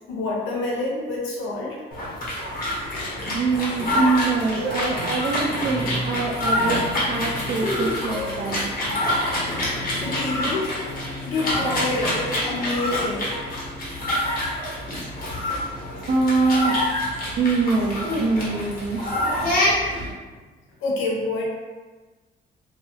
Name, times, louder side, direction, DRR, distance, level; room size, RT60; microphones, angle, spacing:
voice 1, 0.1-1.8 10.0-10.7 11.2-13.3 20.8-21.4, left 2 dB, 85° left, -3 dB, 0.6 m, -27 dB
sound 1, 1.9-20.1, left 1 dB, 45° left, 1.1 m, -26 dB
voice 2, 3.3-8.6 16.1-16.7 17.4-19.0, right 4 dB, 45° right, -3 dB, 0.4 m, -24 dB
2.8 x 2.3 x 2.8 m, 1.3 s
cardioid pair, 90°, 20 cm